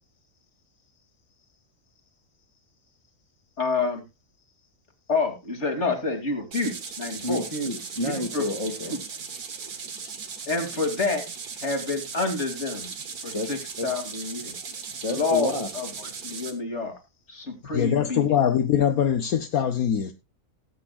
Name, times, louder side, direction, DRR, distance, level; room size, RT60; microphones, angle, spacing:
voice 1, 3.6-4.0 5.1-7.4 8.0-8.4 8.9-9.0 10.5-11.2 11.6-12.9 13.2-14.5 15.1-16.9 17.3-18.3, left 3 dB, 50° left, 2.9 m, -28 dB
sound 1, 6.5-16.5, right 5 dB, 80° right, 2.1 m, -38 dB
voice 2, 7.2-9.0 13.3-13.9 15.0-15.7, left 1 dB, 20° left, 1.9 m, -30 dB
voice 3, 17.7-20.1, left 9 dB, 70° left, 1.4 m, -22 dB
18.5 x 8.6 x 2.3 m
omnidirectional pair, 1.6 m